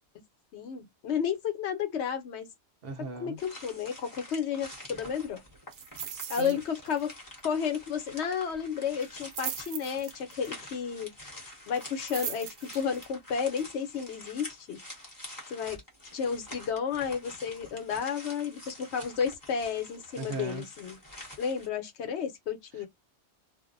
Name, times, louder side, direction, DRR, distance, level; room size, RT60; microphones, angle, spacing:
voice 1, 0.5-2.5 3.2-5.4 6.3-7.1 7.4-11.1 11.7-14.8 15.5-15.8 16.1-21.0 21.4-22.9, left 7 dB, 80° left, 1.0 m, -32 dB
voice 2, 2.8-3.4 6.1-6.6 20.2-20.6, right 3 dB, 65° right, 0.8 m, -38 dB
sound 1, 3.4-21.7, left 1 dB, 20° left, 1.0 m, -47 dB
sound 2, 5.7-6.6 6.8-7.1 7.4-7.5 9.0-10.5 11.7-13.0 13.6-13.7, right 8 dB, 90° right, 0.9 m, -39 dB
2.5 x 2.0 x 2.4 m
omnidirectional pair, 1.1 m